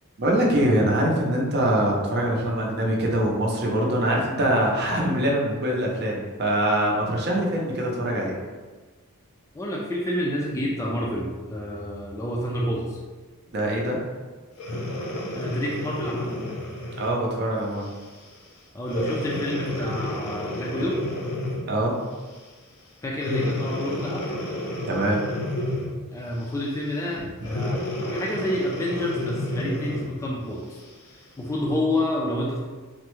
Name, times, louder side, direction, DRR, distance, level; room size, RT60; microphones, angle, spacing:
voice 1, 0.2-8.3 13.5-14.0 17.0-17.9 21.7-22.0 24.9-25.2, right 1 dB, 50° right, -2 dB, 0.6 m, -23 dB
voice 2, 9.5-13.0 15.3-16.4 18.7-21.0 23.0-24.3 26.1-30.8 31.4-32.7, left 1 dB, 15° left, -3 dB, 0.3 m, -29 dB
Breathing, 14.6-17.2 17.8-18.1 18.9-21.8 23.2-26.1 27.4-30.2 30.8-30.9, left 1 dB, 70° left, 0.6 m, -30 dB
3.5 x 2.1 x 3.0 m, 1.3 s
head